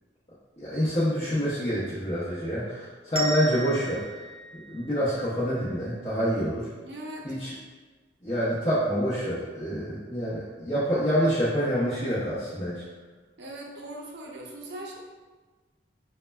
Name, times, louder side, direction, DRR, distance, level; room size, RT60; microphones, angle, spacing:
voice 1, 0.6-4.0 4.7-6.6 7.2-7.5 8.2-12.8, equal, 35° left, -12 dB, 0.7 m, -27 dB
sound 1, 3.1-5.9, right 3 dB, 30° right, 0.4 m, -37 dB
voice 2, 6.8-7.3 13.4-15.0, right 1 dB, 80° right, -1 dB, 0.5 m, -40 dB
5.4 x 2.1 x 2.2 m, 1.3 s
head